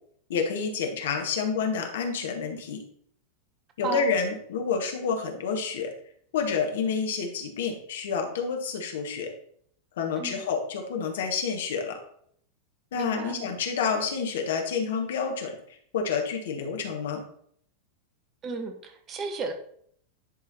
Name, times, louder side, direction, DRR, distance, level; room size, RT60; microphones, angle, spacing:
voice 1, 0.3-2.8 3.8-5.9 6.3-9.3 10.0-12.0 12.9-15.5 15.9-17.2, left 5 dB, 60° left, 4 dB, 1.4 m, -29 dB
voice 2, 12.9-13.5 18.4-19.5, right 4 dB, 30° right, 6 dB, 1.0 m, -34 dB
10.5 x 3.7 x 4.2 m, 0.64 s
figure-of-eight pair, 90°, 0 cm